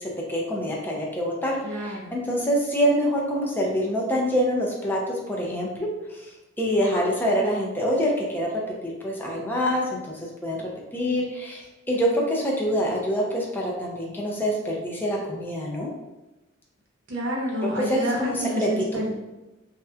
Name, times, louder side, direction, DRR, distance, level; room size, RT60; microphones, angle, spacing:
voice 1, 0.0-5.9 6.2-6.3 6.6-8.5 8.8-11.6 11.9-15.9 17.6-19.0, equal, 10° left, -2 dB, 0.4 m, -26 dB
voice 2, 1.6-2.1 17.1-19.1, equal, 65° right, -2 dB, 0.7 m, -28 dB
2.8 x 2.1 x 2.3 m, 1.0 s
head